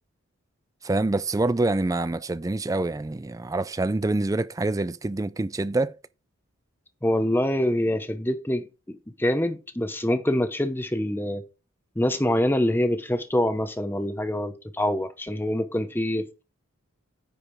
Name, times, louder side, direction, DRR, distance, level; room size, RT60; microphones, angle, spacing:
voice 1, 0.8-5.9, right 2 dB, 15° right, 0.3 m, -26 dB
voice 2, 7.0-11.4 12.0-16.4, left 1 dB, 10° left, 0.8 m, -25 dB
9.9 x 5.0 x 3.6 m
head